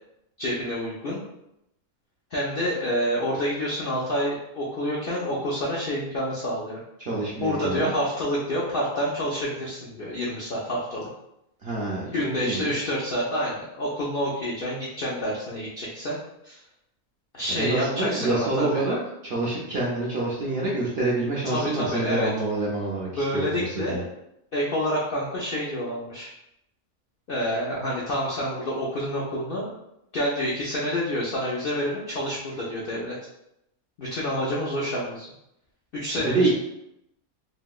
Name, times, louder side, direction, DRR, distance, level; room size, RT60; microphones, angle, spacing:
voice 1, 0.4-1.2 2.3-6.8 7.4-11.1 12.1-16.2 16.4-16.6 17.3-18.9 21.4-22.3 23.2-24.1 24.5-26.3 27.3-29.7 30.1-33.2 34.0-35.3 35.9-36.5, equal, 70° left, -5 dB, 0.5 m, -28 dB
voice 2, 7.0-7.9 11.6-12.1 12.4-12.9 17.5-19.0 19.2-24.0 36.2-36.5, right 2 dB, 65° right, -4 dB, 0.6 m, -27 dB
3.1 x 2.7 x 2.3 m, 0.83 s
omnidirectional pair, 1.5 m